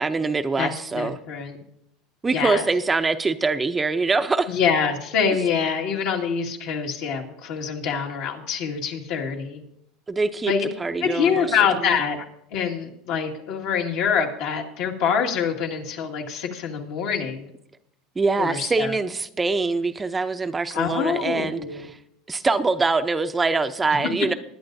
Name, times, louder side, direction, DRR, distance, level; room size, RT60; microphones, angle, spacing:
voice 1, 0.0-1.2 2.2-4.5 10.1-10.5 10.8-12.0 18.2-22.0 22.3-24.3, right 3 dB, 15° right, 9 dB, 0.5 m, -24 dB
voice 2, 0.6-1.6 2.3-2.6 4.5-9.6 10.5-10.7 11.0-12.2 12.5-17.5 18.4-18.9 20.7-21.9, left 6 dB, 70° left, 1 dB, 2.0 m, -25 dB
20.5 x 10.5 x 2.6 m, 0.76 s
supercardioid pair, 115°, 0 cm